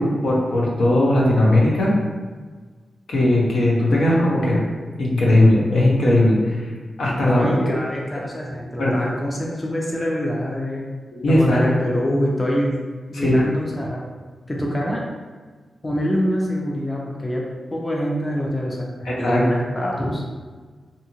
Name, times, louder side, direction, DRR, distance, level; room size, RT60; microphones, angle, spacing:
voice 1, 0.0-1.9 3.1-4.6 5.0-6.7 7.0-7.7 8.8-8.9 11.1-11.6 13.1-13.4 19.0-19.4 19.8-19.9, left 1 dB, 80° left, -4 dB, 0.7 m, -18 dB
voice 2, 7.2-10.9 11.3-12.8 13.1-14.0 14.5-15.0 15.8-20.2, equal, 25° left, -2 dB, 0.5 m, -25 dB
2.7 x 2.5 x 2.8 m, 1.4 s
cardioid pair, 85°, 0 cm